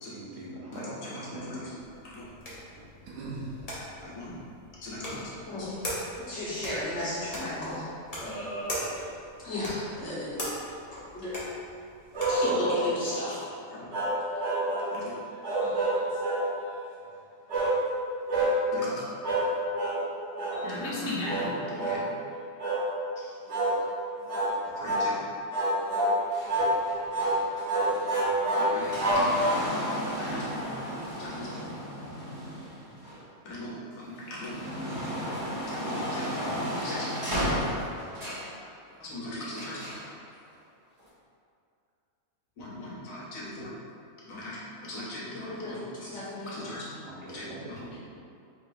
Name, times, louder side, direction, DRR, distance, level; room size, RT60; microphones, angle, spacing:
voice 1, 0.1-1.5 3.2-3.5 47.1-47.2 47.5-47.6, right 2 dB, 80° right, -4 dB, 1.3 m, -40 dB
voice 2, 0.7-1.7 2.0-2.2 4.0-4.4 4.8-5.3 12.5-12.6 13.7-13.9 14.9-15.1 18.7-19.1 20.5-22.1 24.8-25.2 28.5-29.4 30.1-30.7 31.2-31.5 33.4-34.5 35.7-37.1 39.0-39.8 42.6-43.7 44.3-44.6 44.8-46.2 46.5-46.9 47.3-47.8, left 1 dB, 80° left, -7 dB, 1.4 m, -39 dB
sound 1, 1.8-12.5, equal, 30° left, 1.0 m, -41 dB
voice 3, 5.5-5.8 6.1-7.8 8.2-9.1 9.4-10.5 10.9-11.4 12.3-13.4 15.6-16.2 23.2-23.3 45.5-46.8 47.2-47.4, left 1 dB, 60° left, -9 dB, 1.6 m, -35 dB
sound 2, 12.1-12.9 13.9-14.9 15.4-16.5 17.5-17.8 18.3-18.5 19.2-19.5 19.8-20.0 20.4-20.6 21.2-21.5 21.8-22.0 22.6-22.9 23.5-23.7 24.3-24.5 24.8-25.1 25.5-26.2 26.5-26.7 27.1-27.4 27.7-29.8, right 1 dB, 55° right, 1.6 m, -27 dB
sound 3, 26.3-33.5 34.0-38.6 39.5-40.1 41.0-41.1, equal, 25° right, 1.3 m, -34 dB
5.0 x 3.9 x 2.6 m, 2.5 s
omnidirectional pair, 1.4 m